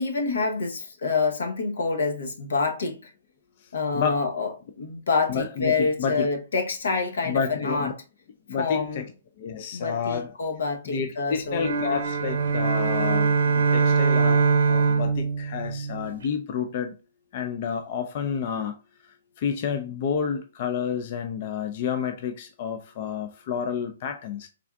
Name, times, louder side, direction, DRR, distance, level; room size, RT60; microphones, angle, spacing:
voice 1, 0.0-3.1 3.7-4.5 4.8-7.9 8.6-9.1 9.7-11.7, left 4 dB, 80° left, 0.9 m, -27 dB
voice 2, 3.9-4.3 5.3-6.3 7.2-7.9 8.5-9.0 9.4-10.3 10.9-16.9 17.3-24.5, left 7 dB, 40° left, 0.4 m, -30 dB
sound 1, 11.5-16.3, right 5 dB, 80° right, 0.8 m, -23 dB
3.6 x 3.4 x 2.3 m
hypercardioid pair, 160°, 0 cm